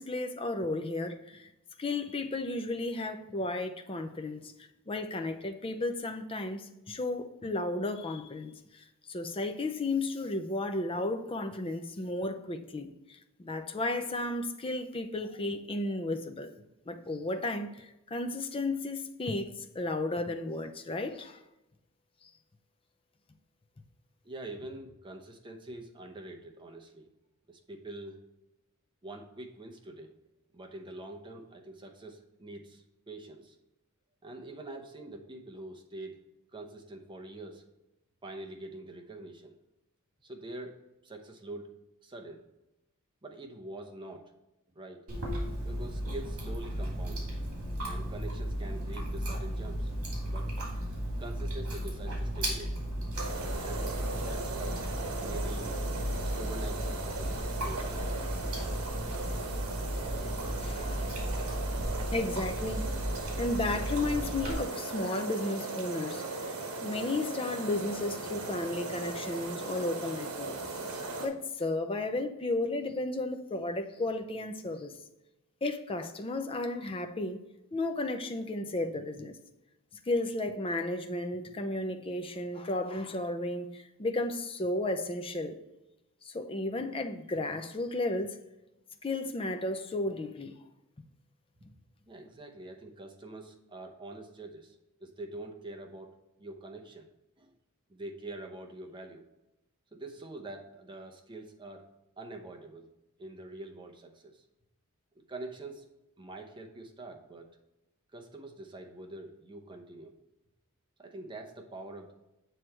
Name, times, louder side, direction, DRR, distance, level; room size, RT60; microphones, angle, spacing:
voice 1, 0.0-1.4 1.8-4.5 4.9-16.5 16.9-21.4 60.6-61.1 62.1-62.9 63.4-66.5 66.8-70.5 71.2-75.0 75.6-77.4 77.7-79.4 80.1-85.6 86.2-88.4 89.0-90.5, left 2 dB, 25° left, 0.5 m, -33 dB
voice 2, 24.2-27.1 27.5-28.2 29.0-30.1 30.5-33.6 34.2-36.2 36.5-37.7 38.2-39.6 40.2-42.4 43.2-44.3 44.7-45.1 45.6-47.3 47.8-49.9 50.3-50.5 51.2-52.9 53.6-54.9 55.2-55.8 56.3-58.1 92.1-96.1 96.4-97.1 97.4-97.5 97.9-99.2 99.9-101.9 102.2-102.9 103.2-104.4 105.3-105.9 106.2-107.6 108.1-110.1 111.0-112.1, right 2 dB, 20° right, 0.8 m, -45 dB
Chewing mastication, 45.1-64.5, equal, 65° right, 2.5 m, -35 dB
sound 1, 53.1-71.3, right 3 dB, 90° right, 1.1 m, -38 dB
7.7 x 3.3 x 4.4 m
head